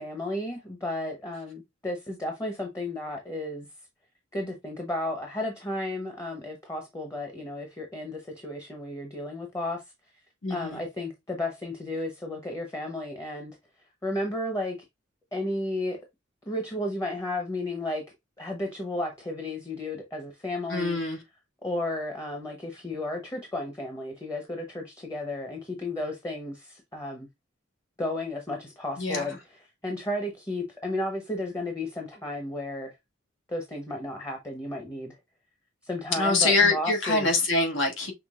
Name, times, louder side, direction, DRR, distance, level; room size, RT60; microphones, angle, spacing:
voice 1, 0.0-3.7 4.3-9.8 10.5-13.6 14.0-14.8 15.3-16.0 16.5-18.0 18.4-21.0 21.6-27.3 28.0-29.4 29.8-32.9 33.5-35.2 35.8-37.3, left 1 dB, 15° left, 0.9 m, -33 dB
voice 2, 10.4-10.8 20.7-21.2 29.0-29.4 36.1-38.1, left 3 dB, 75° left, 1.6 m, -24 dB
5.9 x 3.4 x 2.4 m
head